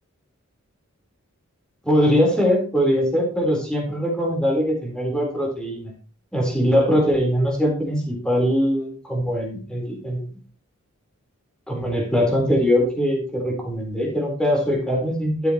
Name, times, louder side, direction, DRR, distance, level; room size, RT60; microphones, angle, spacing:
voice 1, 1.8-5.9 6.3-10.2 11.7-15.5, equal, 5° left, 0 dB, 3.8 m, -21 dB
12.5 x 8.5 x 3.0 m, 0.39 s
head